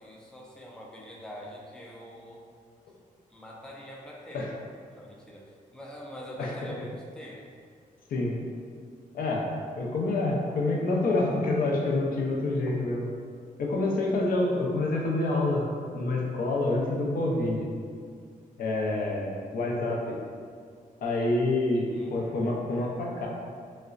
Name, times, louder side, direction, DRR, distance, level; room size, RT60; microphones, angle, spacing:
voice 1, 0.0-2.4 3.3-4.5 4.9-7.5 21.7-22.2, equal, 5° left, -4 dB, 0.4 m, -44 dB
voice 2, 9.1-9.5 9.8-13.1 13.6-15.7 15.9-17.7 18.6-20.1 21.0-23.3, left 2 dB, 90° left, -2 dB, 0.5 m, -27 dB
3.8 x 2.1 x 2.4 m, 2.1 s
wide cardioid pair, 160°, 14 cm